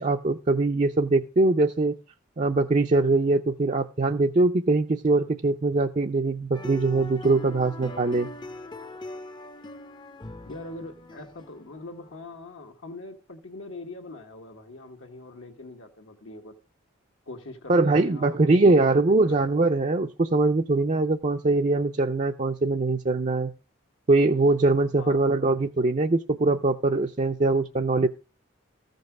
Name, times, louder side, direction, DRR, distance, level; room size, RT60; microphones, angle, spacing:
voice 1, 0.0-1.9 2.4-8.3 17.7-23.5 24.1-28.1, right 2 dB, 35° right, 0.5 m, -22 dB
sound 1, 6.5-12.2, left 2 dB, 20° left, 0.6 m, -41 dB
voice 2, 10.4-16.6 17.3-19.5 25.0-25.2, left 2 dB, 75° left, 1.6 m, -42 dB
14.5 x 5.3 x 6.0 m
head